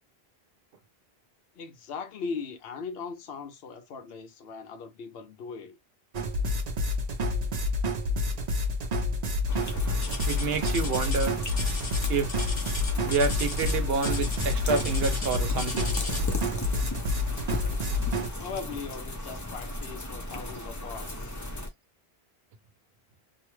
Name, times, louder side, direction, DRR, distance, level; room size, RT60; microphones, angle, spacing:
voice 1, 1.5-5.8 18.4-21.4, left 5 dB, 70° left, 0.8 m, -39 dB
sound 1, 6.1-18.3, left 2 dB, 50° right, 0.6 m, -29 dB
sound 2, 9.5-21.7, left 1 dB, 25° left, 0.5 m, -37 dB
sound 3, 10.0-16.4 17.4-17.6 18.2-18.3 19.0-19.1, left 3 dB, 40° left, 0.9 m, -37 dB
voice 2, 10.3-11.3 12.1-12.5 13.0-15.9, right 4 dB, 75° right, 0.9 m, -28 dB
2.6 x 2.2 x 3.0 m
omnidirectional pair, 1.0 m